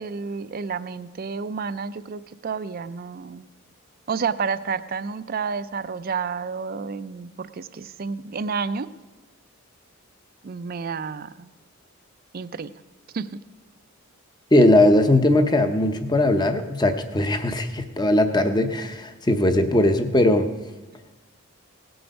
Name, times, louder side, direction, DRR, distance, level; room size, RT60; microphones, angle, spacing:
voice 1, 0.0-3.5 4.1-8.9 10.4-11.5 12.3-12.7 13.1-13.4, right 5 dB, 45° right, 14 dB, 0.4 m, -30 dB
voice 2, 14.5-20.5, left 1 dB, 20° left, 8 dB, 0.7 m, -19 dB
17.5 x 7.8 x 5.3 m, 1.1 s
head